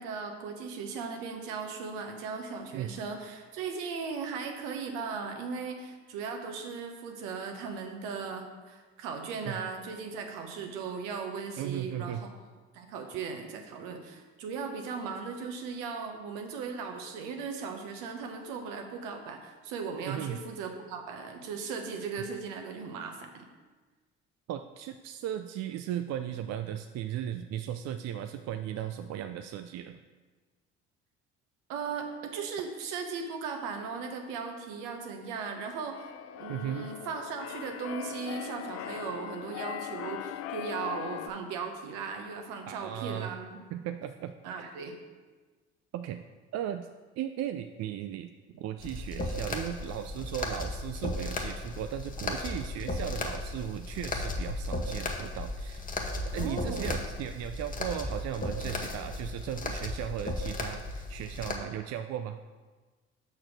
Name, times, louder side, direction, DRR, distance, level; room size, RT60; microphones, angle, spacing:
voice 1, 0.0-12.3 12.7-23.4 31.7-36.1 36.4-43.7 44.4-44.9 56.3-57.0, right 5 dB, 75° right, 4 dB, 1.1 m, -37 dB
voice 2, 11.6-12.2 20.1-20.4 24.5-30.0 36.5-36.9 42.7-43.3 43.7-44.8 45.9-46.2 46.5-46.9 47.2-48.3 48.6-55.9 56.3-62.4, right 10 dB, 50° right, 8 dB, 0.5 m, -36 dB
Keyboard (musical), 35.4-41.3, left 11 dB, 45° left, 0.5 m, -40 dB
sound 1, 48.8-61.6, left 2 dB, 25° left, 1.2 m, -35 dB
5.9 x 4.5 x 6.3 m, 1.3 s
hypercardioid pair, 60°, 33 cm